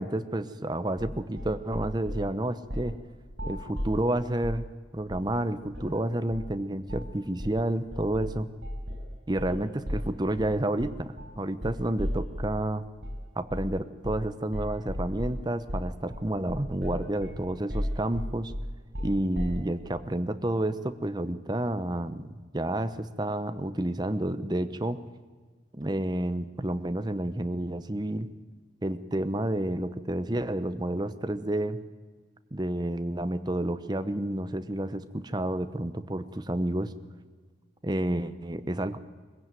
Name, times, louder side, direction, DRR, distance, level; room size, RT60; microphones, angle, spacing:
voice 1, 0.0-3.0 3.5-4.7 4.9-8.5 9.3-12.8 13.4-18.5 19.0-25.0 25.7-28.3 28.8-31.8 32.5-36.9 37.8-39.0, right 1 dB, 20° right, 11 dB, 0.8 m, -30 dB
sound 1, 1.0-2.3 2.7-3.0 3.3-4.7 5.1-5.4 5.7-5.9 6.3-6.6 6.9-7.1 7.4-12.6 13.0-13.2 13.5-13.8 14.0-14.3 14.5-19.7, equal, 70° right, 5.7 m, -35 dB
22.5 x 16.0 x 9.2 m, 1.5 s
head